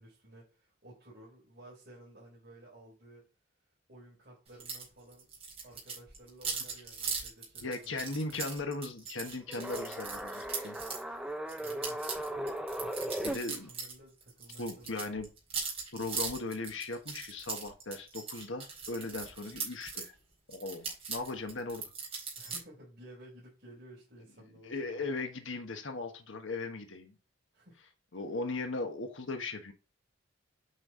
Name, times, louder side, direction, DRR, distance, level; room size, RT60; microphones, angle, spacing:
voice 1, 0.0-3.2 3.9-5.3 5.6-8.4 11.6-12.0 12.8-15.2 22.4-25.1 27.5-27.8, right 1 dB, 50° right, -7 dB, 4.7 m, -54 dB
sound 1, 4.6-4.9 5.1-11.0 11.5-14.0 14.2-20.1 20.5-22.6, right 5 dB, 30° right, 4.3 m, -39 dB
voice 2, 7.6-10.8 13.2-13.7 14.6-15.3 15.9-20.1 20.5-21.8 24.6-27.2 28.1-29.7, left 3 dB, 75° left, 6 dB, 1.3 m, -38 dB
sound 2, 9.5-13.3, right 1 dB, 5° right, 0.7 m, -37 dB
9.0 x 5.5 x 3.8 m, 0.32 s
head